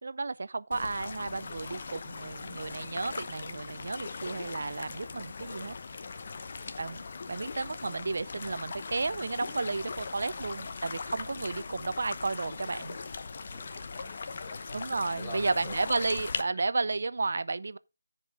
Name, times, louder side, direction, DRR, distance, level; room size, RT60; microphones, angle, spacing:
voice 1, 0.0-5.7 6.8-7.0 7.3-13.0 14.7-17.8, right 3 dB, 60° right, 0.6 m, -33 dB
sound 1, 0.7-16.4, left 4 dB, 45° left, 0.8 m, -40 dB
voice 2, 13.3-14.8 15.1-16.2 16.5-16.6, left 2 dB, 20° left, 4.4 m, -47 dB
14.5 x 5.2 x 3.6 m
figure-of-eight pair, 165°, 0 cm